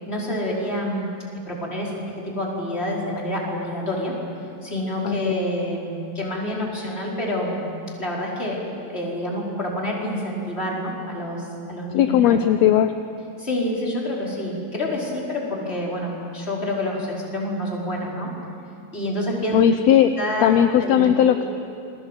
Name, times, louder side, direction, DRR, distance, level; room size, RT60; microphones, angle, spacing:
voice 1, 0.1-1.1 1.5-4.2 4.6-8.6 8.9-12.4 13.4-18.3 18.9-19.6 20.2-20.5 20.8-21.4, left 1 dB, 20° left, -4 dB, 5.2 m, -28 dB
voice 2, 11.9-12.9 19.5-20.1 20.4-21.4, left 10 dB, 75° left, 8 dB, 1.9 m, -17 dB
28.5 x 22.0 x 8.3 m, 2.7 s
omnidirectional pair, 3.3 m